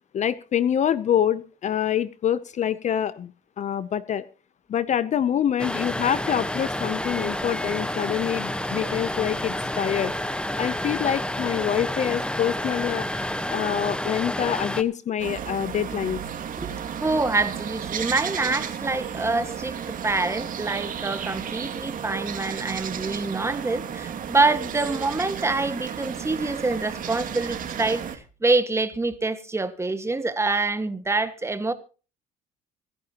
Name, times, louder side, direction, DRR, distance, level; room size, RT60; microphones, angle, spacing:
voice 1, 0.1-3.3 3.6-4.3 4.7-10.1 10.6-16.2, left 9 dB, 45° left, 0.7 m, -26 dB
sound 1, 5.6-14.8, left 1 dB, 5° left, 1.2 m, -29 dB
sound 2, 15.2-28.2, right 8 dB, 55° right, 2.4 m, -33 dB
voice 2, 17.0-31.7, right 3 dB, 15° right, 1.7 m, -26 dB
26.0 x 10.0 x 3.0 m
cardioid pair, 110°, 17 cm